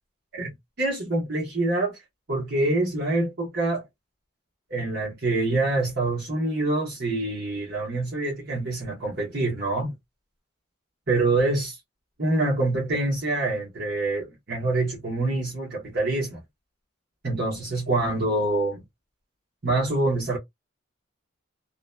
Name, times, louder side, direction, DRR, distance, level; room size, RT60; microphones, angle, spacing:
voice 1, 0.3-2.0 2.3-3.8 4.7-9.9 11.1-11.8 12.2-16.4 17.2-18.8 19.6-20.4, right 2 dB, 50° right, 1.1 m, -26 dB
2.9 x 2.1 x 2.2 m
head